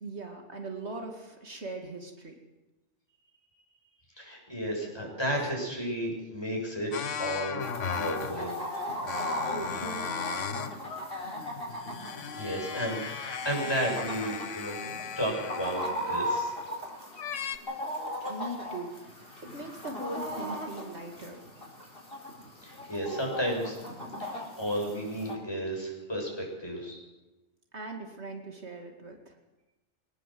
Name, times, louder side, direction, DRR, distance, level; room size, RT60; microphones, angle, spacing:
voice 1, 0.0-2.3 5.4-5.5 9.4-10.4 18.3-19.0 19.4-21.4 27.7-29.3, right 2 dB, 65° right, 3 dB, 2.6 m, -40 dB
voice 2, 4.2-7.6 7.9-8.6 12.3-14.8 15.2-16.5 22.6-23.8 24.2-27.0, equal, 20° left, -1 dB, 7.0 m, -33 dB
sound 1, 6.9-8.5 9.0-10.8 11.2-16.7 17.2-17.6, left 6 dB, 85° left, 1.4 m, -37 dB
Chicken rooster, 7.6-25.3, equal, 50° left, 4.6 m, -38 dB
22.0 x 18.5 x 7.8 m, 1.1 s
omnidirectional pair, 1.2 m